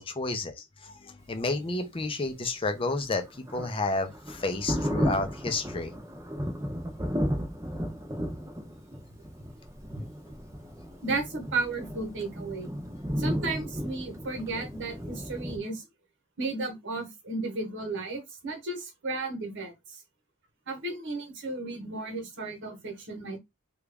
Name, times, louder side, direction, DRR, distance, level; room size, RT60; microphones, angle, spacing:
voice 1, 0.0-3.2 3.5-5.9, left 2 dB, 25° left, 0.5 m, -31 dB
Thunder, 2.8-15.6, equal, 15° right, 0.7 m, -34 dB
voice 2, 11.0-12.8 13.2-15.9 16.4-19.7 20.7-23.4, right 3 dB, 55° right, 1.1 m, -34 dB
3.0 x 2.4 x 3.4 m
head